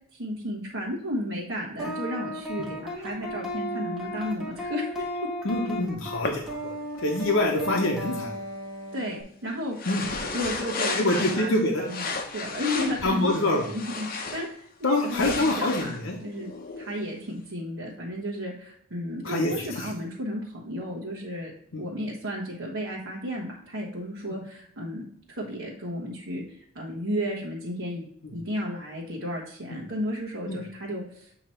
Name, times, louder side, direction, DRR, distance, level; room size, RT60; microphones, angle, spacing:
voice 1, 0.2-5.1 8.9-9.2 9.4-9.9 10.3-16.0 16.2-16.5 16.8-21.5 21.8-25.0 25.3-31.3, equal, 65° right, -5 dB, 1.2 m, -33 dB
sound 1, 1.8-9.2, equal, ahead, 1.3 m, -35 dB
voice 2, 5.4-6.7 7.0-8.4 9.9-10.0 11.0-11.8 13.0-13.7 14.8-16.2 19.2-19.9 21.7-21.8 30.5-30.6, left 2 dB, 70° left, 0 dB, 0.9 m, -25 dB
sound 2, 6.2-6.3 9.8-11.6 11.9-14.5 14.9-17.1, left 4 dB, 45° left, 0.7 m, -33 dB
7.7 x 3.0 x 4.3 m, 0.65 s
head